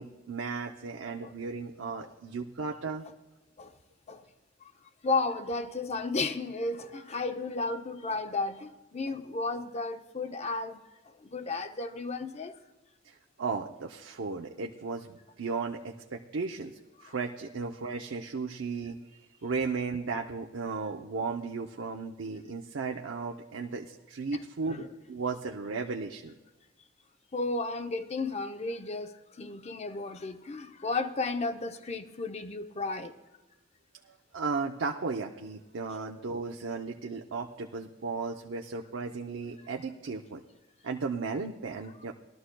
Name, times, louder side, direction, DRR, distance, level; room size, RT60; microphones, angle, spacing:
voice 1, 0.0-3.0 13.0-19.0 19.4-26.4 34.3-40.4 40.8-42.1, right 4 dB, 85° right, 0.6 m, -35 dB
voice 2, 5.0-12.6 17.0-17.1 24.3-24.4 24.7-24.9 27.3-33.1, left 3 dB, 35° left, 0.6 m, -33 dB
19.5 x 13.0 x 2.2 m
head